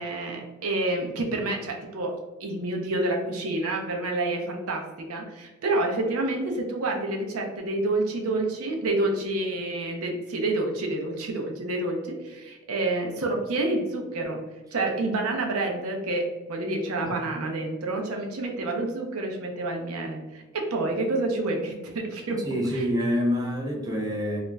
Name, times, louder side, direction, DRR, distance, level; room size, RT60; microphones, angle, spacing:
voice 1, 0.0-14.4 14.7-22.5 22.7-22.9, right 2 dB, 70° right, 1 dB, 0.5 m, -28 dB
voice 2, 22.4-24.4, equal, 15° right, -2 dB, 0.4 m, -26 dB
2.3 x 2.1 x 3.1 m, 1.1 s
head